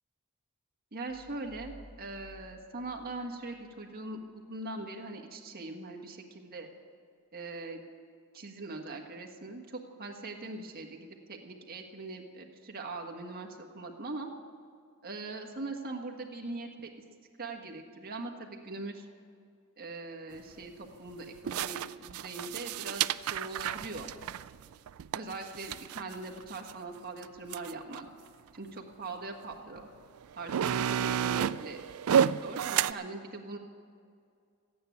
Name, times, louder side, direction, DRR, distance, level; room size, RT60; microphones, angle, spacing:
voice 1, 0.9-6.7 7.3-7.8 8.3-14.3 15.0-16.9 17.4-19.1 19.8-24.1 25.1-28.1 28.5-29.9 30.4-31.8 32.0-33.6, right 2 dB, 45° right, 2 dB, 1.6 m, -41 dB
sound 1, 1.1-3.7, left 1 dB, 70° left, 1.9 m, -54 dB
sound 2, 20.3-20.4 21.5-26.7 27.2-27.3 27.5-28.0 28.8-28.9 29.8-29.9 30.2-32.9, right 8 dB, 75° right, 0.4 m, -31 dB
14.0 x 9.4 x 9.3 m, 2.3 s
head